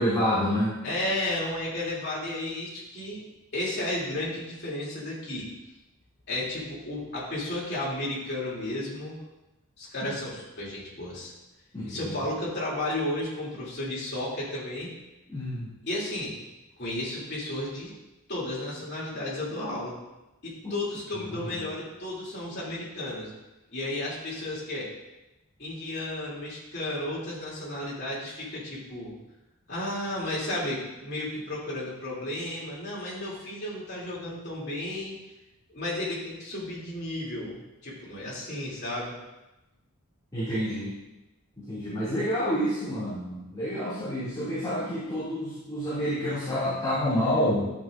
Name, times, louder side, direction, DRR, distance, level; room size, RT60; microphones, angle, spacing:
voice 1, 0.0-0.7 11.7-12.0 15.3-15.7 20.6-20.7 21.2-21.4 40.3-41.0 41.6-47.7, equal, 20° left, -12 dB, 2.3 m, -28 dB
voice 2, 0.8-3.2 3.5-5.5 6.3-9.2 9.8-11.3 11.8-14.9 15.8-16.4 16.8-17.9 18.3-20.0 20.4-23.3 23.7-24.9 25.6-29.1 29.7-35.1 35.7-39.1, left 1 dB, 50° left, -6 dB, 2.8 m, -33 dB
10.5 x 7.2 x 2.5 m, 0.98 s
head